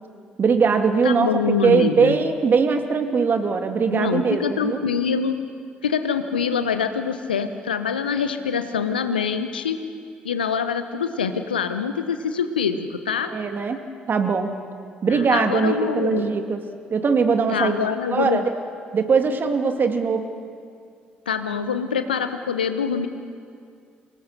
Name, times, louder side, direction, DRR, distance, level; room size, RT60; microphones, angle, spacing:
voice 1, 0.4-4.8 13.3-13.8 14.1-14.5 15.0-16.6 16.9-17.7 18.1-18.5 18.9-20.3, right 5 dB, 40° right, 6 dB, 2.2 m, -21 dB
voice 2, 1.0-2.1 3.9-5.3 5.8-9.8 10.2-13.3 15.1-16.3 17.5-18.4 21.3-23.1, left 6 dB, 85° left, 9 dB, 0.9 m, -25 dB
25.0 x 19.5 x 6.7 m, 2.3 s
figure-of-eight pair, 45°, 5 cm